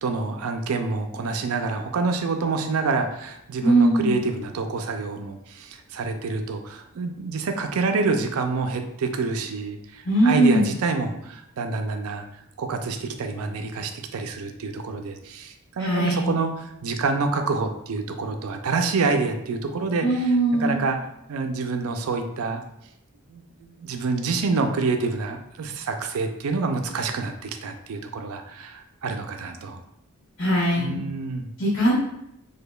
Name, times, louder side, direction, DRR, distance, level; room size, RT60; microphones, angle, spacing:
voice 1, 0.0-12.2 12.6-16.5 16.8-21.0 21.3-22.6 23.3-29.8 30.8-31.5, right 4 dB, 90° right, 6 dB, 0.4 m, -27 dB
voice 2, 3.6-4.2 10.0-10.6 15.8-16.3 20.0-20.8 30.4-31.0 31.6-32.0, right 1 dB, 70° left, -10 dB, 0.9 m, -20 dB
5.0 x 2.2 x 2.2 m, 0.80 s
head